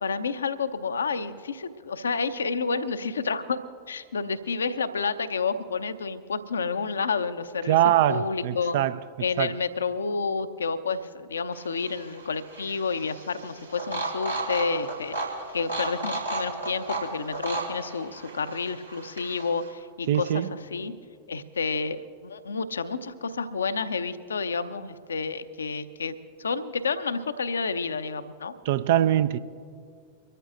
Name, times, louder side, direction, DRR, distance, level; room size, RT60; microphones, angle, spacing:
voice 1, 0.0-3.6 3.9-8.8 9.2-20.9 21.3-28.5, left 5 dB, 70° left, 0.7 m, -30 dB
voice 2, 7.7-9.0 9.4-9.5 20.1-20.5 28.7-29.4, right 12 dB, 55° right, 0.4 m, -22 dB
sound 1, 11.5-19.7, right 2 dB, 90° right, 2.8 m, -34 dB
24.5 x 13.5 x 2.6 m
figure-of-eight pair, 90°, 0 cm